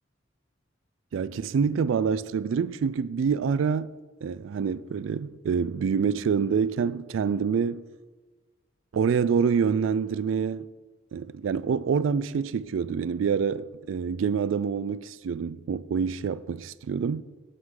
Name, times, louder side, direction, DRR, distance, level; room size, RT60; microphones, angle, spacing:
voice 1, 1.1-7.8 8.9-10.7 11.1-17.2, right 6 dB, 85° right, 0.3 m, -26 dB
18.0 x 6.3 x 3.8 m
head